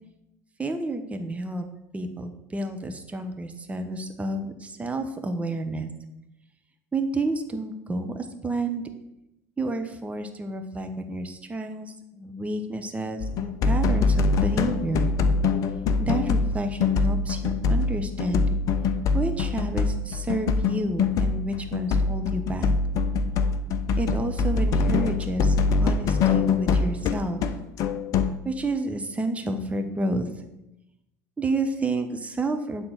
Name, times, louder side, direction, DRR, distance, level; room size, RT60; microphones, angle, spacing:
voice 1, 0.6-1.6 1.9-5.9 6.9-8.8 9.6-15.1 16.0-18.6 19.1-22.7 24.0-27.4 28.4-30.3 31.4-32.8, right 2 dB, 15° right, 6 dB, 1.0 m, -30 dB
sound 1, 13.2-28.4, left 4 dB, 45° left, 0.5 m, -24 dB
8.7 x 3.9 x 6.0 m, 0.88 s
figure-of-eight pair, 70°, 8 cm